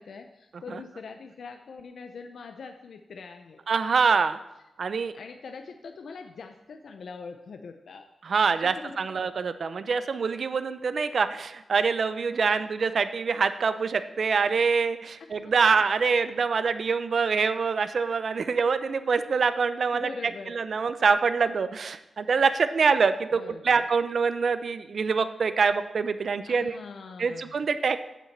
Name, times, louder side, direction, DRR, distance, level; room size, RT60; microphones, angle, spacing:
voice 1, 0.0-3.6 5.1-8.1 8.6-9.0 15.7-15.8 19.9-20.5 23.4-23.8 26.4-27.6, left 4 dB, 65° left, 6 dB, 0.6 m, -43 dB
voice 2, 3.7-4.4 4.8-5.1 8.2-26.8 27.2-28.1, right 5 dB, 50° right, 12 dB, 0.6 m, -25 dB
8.3 x 7.2 x 7.3 m, 0.94 s
wide cardioid pair, 155°, 0 cm